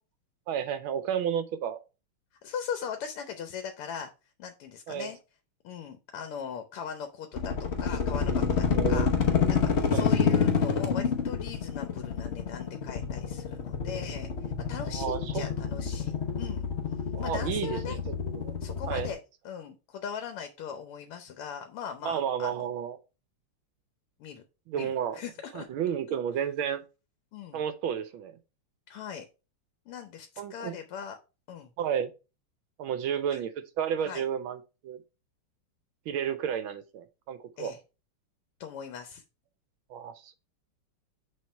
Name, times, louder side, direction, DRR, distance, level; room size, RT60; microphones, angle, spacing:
voice 1, 0.5-1.8 4.9-5.1 8.7-9.1 9.9-10.1 14.9-15.4 17.1-18.0 18.2-18.5 18.9-19.1 22.0-23.0 24.7-25.2 25.5-26.8 27.5-28.4 30.4-30.7 31.8-32.1 32.8-33.5 33.8-35.0 36.1-37.7 39.9-40.3, right 8 dB, 75° right, 11 dB, 1.4 m, -32 dB
voice 2, 2.4-4.1 4.4-5.2 5.6-7.5 7.8-9.1 9.5-16.7 17.2-18.0 18.6-19.2 19.4-22.7 24.2-24.4 24.8-25.7 27.3-27.6 28.9-29.3 29.9-31.2 31.5-31.7 33.3-33.4 34.0-34.3 37.6-37.8 38.6-39.2, left 7 dB, 85° left, 7 dB, 1.7 m, -40 dB
sound 1, 7.3-19.1, left 6 dB, 55° left, 0.7 m, -28 dB
6.5 x 3.6 x 4.4 m, 0.30 s
omnidirectional pair, 2.4 m